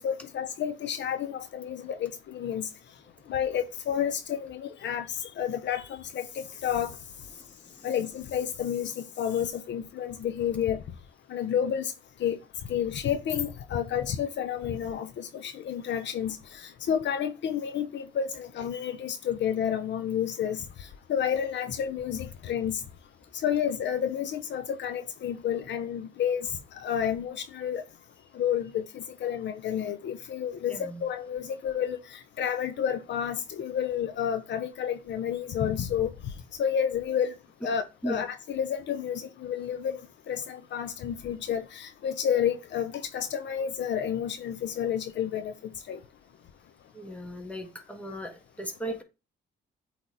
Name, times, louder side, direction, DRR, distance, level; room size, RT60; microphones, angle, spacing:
voice 1, 0.0-2.7 3.3-7.0 7.8-10.8 11.3-11.9 12.2-12.4 12.7-22.8 23.4-26.5 26.7-27.8 28.3-36.3 36.6-37.3 37.6-40.0 40.3-46.0, left 9 dB, 65° left, 0.7 m, -30 dB
voice 2, 7.4-7.9 30.7-31.0 38.0-38.2 46.9-49.0, right 1 dB, 5° left, 1.4 m, -37 dB
8.2 x 3.1 x 3.9 m
cardioid pair, 90°, 20 cm